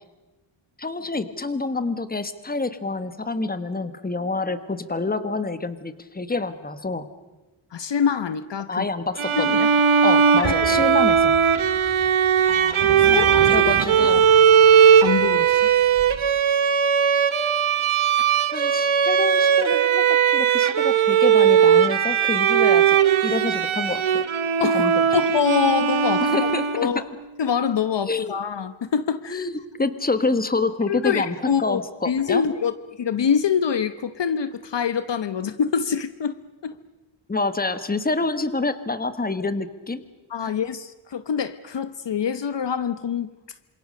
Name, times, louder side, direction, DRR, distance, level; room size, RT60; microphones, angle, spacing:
voice 1, 0.8-7.1 8.7-9.7 10.0-11.3 13.1-13.2 13.5-14.2 18.5-23.0 23.2-24.2 24.7-24.9 26.2-27.0 28.1-28.3 29.3-29.5 29.8-32.4 37.3-40.0 40.4-40.5, left 3 dB, 20° left, 12 dB, 1.4 m, -27 dB
voice 2, 7.7-8.9 9.3-9.6 10.4-10.9 12.5-13.6 15.0-15.7 24.6-26.5 26.8-27.0 27.4-29.5 30.9-36.4 36.6-36.8 40.3-43.3, left 7 dB, 60° left, 13 dB, 1.0 m, -25 dB
Bowed string instrument, 9.2-27.0, right 7 dB, 75° right, 1.4 m, -18 dB
sound 1, 10.3-16.2, right 4 dB, 55° right, 4.3 m, -35 dB
27.5 x 27.0 x 6.6 m, 1.1 s
wide cardioid pair, 155°, 49 cm